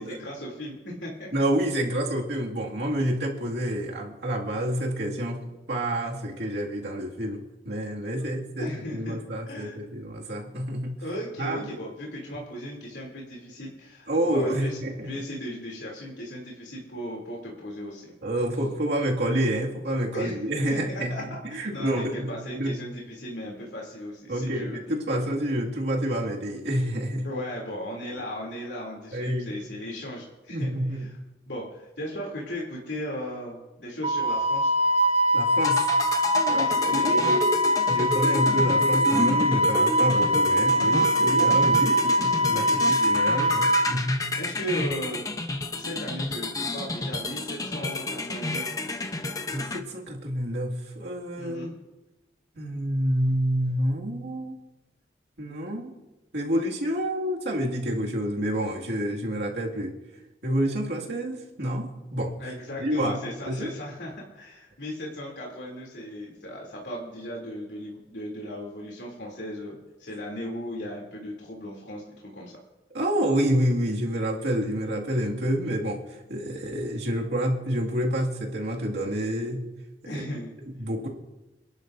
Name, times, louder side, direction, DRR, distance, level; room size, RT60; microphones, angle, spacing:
voice 1, 0.0-1.3 8.2-8.3 8.6-9.2 9.5-9.8 11.0-18.1 20.1-20.4 20.7-24.8 27.2-31.1 31.5-34.7 36.5-37.4 42.5-42.9 44.4-45.2 45.8-48.7 51.4-51.7 62.4-72.0 72.3-72.6 80.0-80.5, equal, 80° left, -3 dB, 3.1 m, -37 dB
voice 2, 1.3-11.0 11.4-11.7 14.1-15.2 18.2-22.8 24.3-27.3 29.1-29.6 30.5-31.2 35.3-35.9 36.3-37.6 37.9-44.3 49.5-51.7 52.6-54.6 55.4-55.9 56.3-59.9 60.4-62.4 62.8-63.7 72.9-79.7 80.1-80.3 80.7-81.1, right 1 dB, 70° right, -2 dB, 2.3 m, -28 dB
Wind instrument woodwind instrument, 34.0-43.9, equal, 35° right, 0.8 m, -22 dB
sound 1, 35.6-49.8, left 2 dB, 20° left, 0.8 m, -31 dB
28.5 x 11.5 x 2.7 m, 1.1 s
head